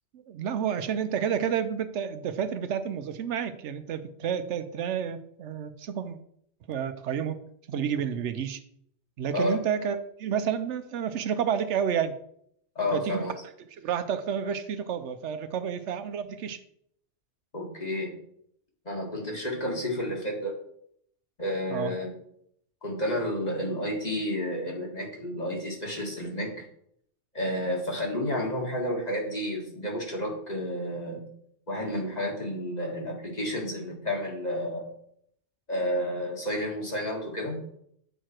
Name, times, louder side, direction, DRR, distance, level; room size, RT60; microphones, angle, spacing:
voice 1, 0.3-6.2 6.7-7.4 7.7-8.6 9.2-12.1 12.9-13.3 13.8-16.6 21.7-21.9, right 8 dB, 80° right, 11 dB, 1.0 m, -30 dB
voice 2, 12.8-13.3 17.5-18.1 18.9-20.5 21.4-22.1 22.8-26.6 27.3-31.3 31.7-34.9 35.7-37.6, left 1 dB, 35° left, -1 dB, 1.9 m, -31 dB
8.9 x 4.8 x 4.4 m, 0.69 s
omnidirectional pair, 1.2 m